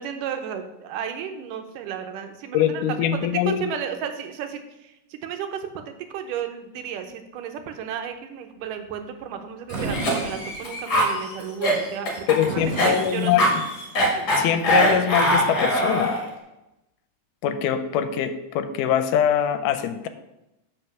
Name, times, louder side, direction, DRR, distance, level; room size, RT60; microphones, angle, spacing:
voice 1, 0.0-2.8 3.1-12.3 12.6-13.5 14.1-14.3, right 8 dB, 85° right, 7 dB, 2.4 m, -33 dB
voice 2, 2.5-3.7 12.3-13.6 14.4-16.2 17.4-20.1, left 9 dB, 80° left, 10 dB, 2.2 m, -23 dB
Cough, 9.7-16.3, equal, 35° left, 2.0 m, -23 dB
Fireworks, 9.7-11.0 12.5-14.0, right 3 dB, 55° right, 3.0 m, -33 dB
7.7 x 5.1 x 6.1 m, 0.93 s
omnidirectional pair, 3.7 m